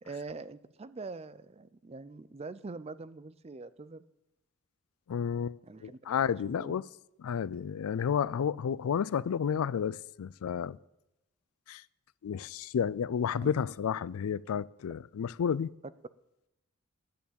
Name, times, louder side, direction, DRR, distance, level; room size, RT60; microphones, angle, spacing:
voice 1, 0.0-4.1 5.6-6.0 6.4-6.7 13.4-13.5, right 3 dB, 25° right, 0.4 m, -43 dB
voice 2, 5.1-6.8 7.2-10.8 11.7-11.8 12.2-15.7, left 7 dB, 75° left, 0.3 m, -31 dB
10.5 x 7.1 x 8.6 m
head